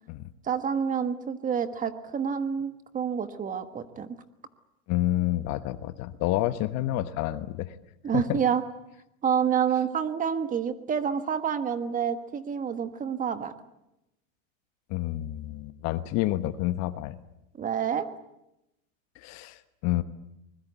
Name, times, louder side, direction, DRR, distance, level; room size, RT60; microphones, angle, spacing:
voice 1, 0.4-4.1 8.0-8.6 9.2-13.5 17.6-18.1, right 7 dB, 20° right, 10 dB, 1.4 m, -28 dB
voice 2, 4.9-7.8 8.1-8.4 14.9-17.2 19.2-20.0, left 15 dB, 40° left, 12 dB, 1.2 m, -29 dB
24.0 x 21.5 x 8.1 m, 0.86 s
supercardioid pair, 145°, 42 cm